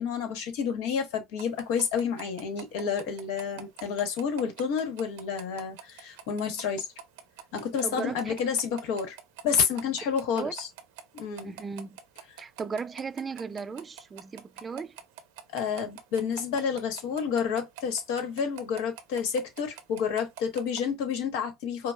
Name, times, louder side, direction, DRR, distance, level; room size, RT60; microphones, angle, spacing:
voice 1, 0.0-6.9 7.5-9.2 9.4-10.7 11.1-11.5 15.5-21.9, left 6 dB, 85° left, 1.1 m, -29 dB
sound 1, 1.4-20.8, right 9 dB, 90° right, 0.7 m, -44 dB
voice 2, 7.8-8.3 10.3-10.5 11.4-12.0 12.4-15.0, right 5 dB, 25° right, 0.4 m, -36 dB
5.1 x 2.0 x 2.3 m
supercardioid pair, 110°, 0 cm